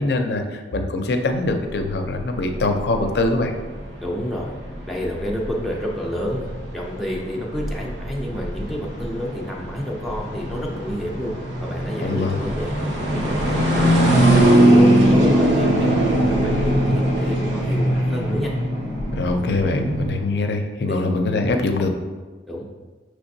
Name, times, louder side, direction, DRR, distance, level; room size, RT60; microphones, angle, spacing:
voice 1, 0.0-3.5 12.0-12.4 19.1-21.9, left 2 dB, 65° left, 5 dB, 0.4 m, -23 dB
sound 1, 1.3-20.2, right 1 dB, 90° right, 1.0 m, -21 dB
voice 2, 4.0-4.5 4.9-11.3 11.6-13.9 14.4-18.5 20.9-21.1 22.5-22.6, equal, ahead, -4 dB, 0.4 m, -29 dB
5.8 x 3.3 x 2.6 m, 1.4 s
head